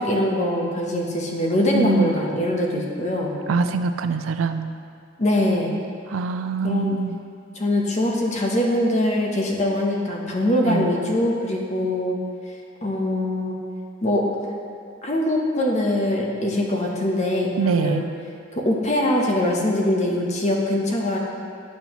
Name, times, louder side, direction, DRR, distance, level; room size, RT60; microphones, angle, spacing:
voice 1, 0.0-3.4 5.2-5.7 6.6-7.0 7.5-12.2 12.8-13.6 14.0-14.2 15.0-18.1 18.5-21.2, left 1 dB, 35° left, -1 dB, 0.8 m, -22 dB
voice 2, 1.7-2.2 3.5-4.7 6.1-7.2 10.6-10.9 17.6-18.0, right 4 dB, 90° right, 9 dB, 0.4 m, -23 dB
9.0 x 5.3 x 3.0 m, 2.4 s
head